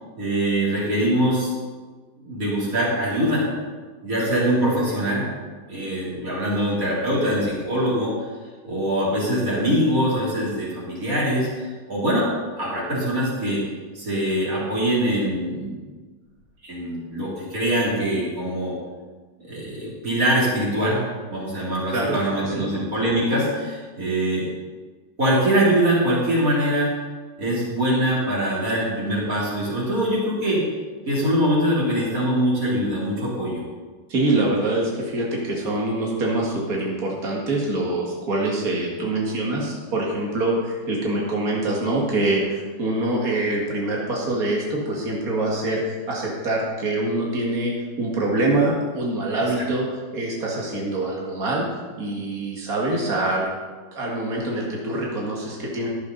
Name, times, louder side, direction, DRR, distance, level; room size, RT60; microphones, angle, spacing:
voice 1, 0.2-1.5 2.2-3.5 4.0-5.3 5.7-8.2 8.6-12.3 12.6-13.7 14.0-15.7 16.6-18.8 19.4-21.0 21.3-24.5 25.2-27.0 27.4-30.6 31.1-33.6 49.6-49.7, right 1 dB, 20° right, -6 dB, 3.4 m, -23 dB
voice 2, 21.9-22.7 34.1-47.7 48.0-49.8 50.1-51.6 52.0-53.4 53.9-55.9, right 2 dB, 80° right, -3 dB, 0.7 m, -24 dB
13.5 x 11.0 x 4.1 m, 1.4 s
omnidirectional pair, 5.0 m